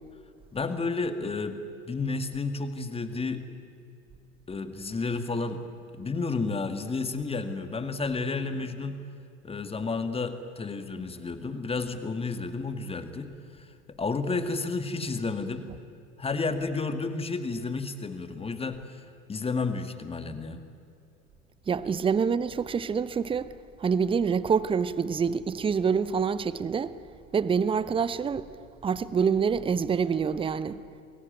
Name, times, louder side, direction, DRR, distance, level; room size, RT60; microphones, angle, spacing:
voice 1, 0.5-1.6 1.9-3.4 4.5-5.6 5.9-9.0 9.4-13.3 13.6-13.7 14.0-15.7 16.2-20.6, left 3 dB, 15° left, 2.1 m, -31 dB
voice 2, 21.7-23.5 23.8-26.9 27.3-28.5 28.8-30.8, right 6 dB, 15° right, 0.9 m, -26 dB
29.0 x 22.0 x 9.3 m
figure-of-eight pair, 80°, 40 cm